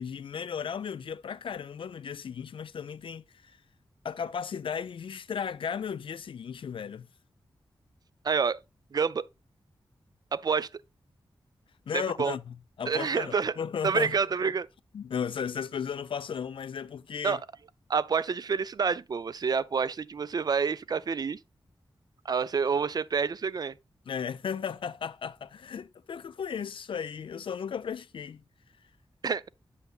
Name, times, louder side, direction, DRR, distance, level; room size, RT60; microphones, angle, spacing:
voice 1, 0.0-3.5 4.0-7.1 11.9-14.2 14.9-17.4 24.1-28.4, left 7 dB, 75° left, 0.4 m, -35 dB
voice 2, 8.2-8.6 8.9-9.2 10.3-10.7 11.9-12.3 12.9-13.6 13.8-14.7 17.2-17.4 17.9-21.4 22.3-23.7 29.2-29.5, right 5 dB, 45° right, 0.4 m, -28 dB
8.3 x 6.7 x 2.4 m
wide cardioid pair, 135°, 9 cm